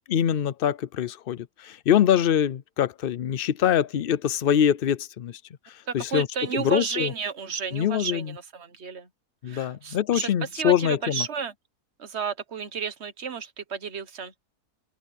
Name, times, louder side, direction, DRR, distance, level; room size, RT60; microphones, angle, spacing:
voice 1, 0.1-5.4 5.7-6.3 6.5-7.1 7.7-8.3 9.4-11.3, left 9 dB, 75° left, 0.5 m, -24 dB
voice 2, 5.9-8.2 8.5-9.1 9.5-11.5 12.0-14.3, right 6 dB, 45° right, 1.4 m, -32 dB
open air
omnidirectional pair, 1.7 m